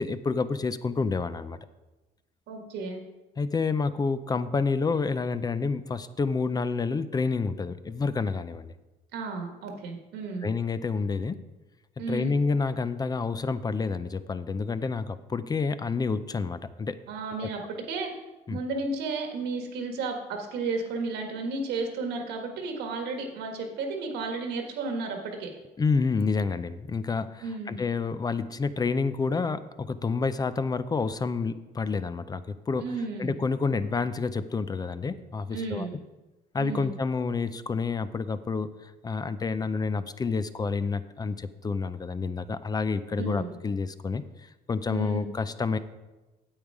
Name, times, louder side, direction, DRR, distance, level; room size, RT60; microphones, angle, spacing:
voice 1, 0.0-1.6 3.4-8.7 10.4-11.4 12.1-17.0 17.4-17.5 18.5-18.6 25.8-32.9 33.2-35.9 36.5-45.8, left 4 dB, 25° left, 13 dB, 0.5 m, -29 dB
voice 2, 2.5-3.0 9.1-10.5 12.0-12.3 17.1-18.1 18.5-25.5 27.4-27.8 32.8-33.3 35.5-35.9 36.6-37.0 43.2-43.5 44.9-45.3, right 3 dB, 85° right, 3 dB, 1.7 m, -33 dB
8.8 x 8.1 x 4.8 m, 1.1 s
cardioid pair, 110°, 17 cm